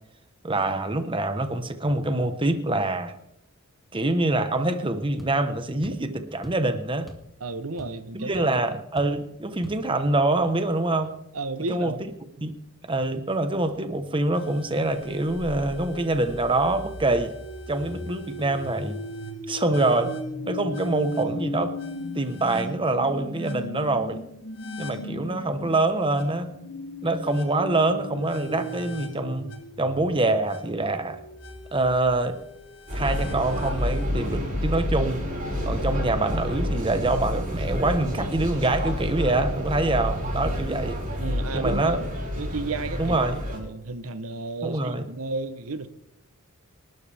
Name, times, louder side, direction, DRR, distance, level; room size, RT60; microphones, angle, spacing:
voice 1, 0.4-3.1 3.9-7.1 8.1-11.1 11.7-12.0 12.4-12.5 12.9-17.3 17.7-19.0 19.5-20.1 20.4-21.7 22.1-24.2 24.8-26.5 27.0-29.5 29.8-31.2 31.7-32.4 32.9-35.2 35.6-41.0 41.5-42.0 43.0-43.4 44.6-45.1, right 2 dB, 25° right, 9 dB, 1.1 m, -25 dB
sound 1, 5.2-5.4 5.8-6.1 6.4-6.7 7.1-7.3 7.6-8.1 8.3-8.5 9.0-9.2 9.6-9.8, left 1 dB, ahead, 2.1 m, -42 dB
voice 2, 7.4-8.5 11.3-12.0 41.2-42.1 42.4-43.2 43.5-45.9, right 3 dB, 70° right, 11 dB, 0.9 m, -32 dB
sound 2, 14.3-34.1, equal, 80° left, 4.1 m, -37 dB
sound 3, 32.9-43.6, equal, 40° right, 7.9 m, -29 dB
26.5 x 12.5 x 3.5 m, 0.81 s
head